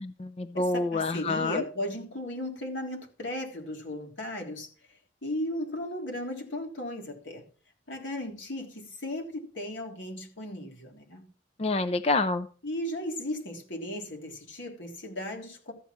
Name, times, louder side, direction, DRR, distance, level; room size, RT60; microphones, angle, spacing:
voice 1, 0.0-1.6 11.6-12.5, left 3 dB, 30° left, 11 dB, 0.4 m, -28 dB
voice 2, 0.5-4.7 5.2-7.4 7.9-11.3 12.6-15.7, left 1 dB, 75° left, 1 dB, 3.5 m, -36 dB
14.0 x 8.3 x 4.5 m, 0.39 s
head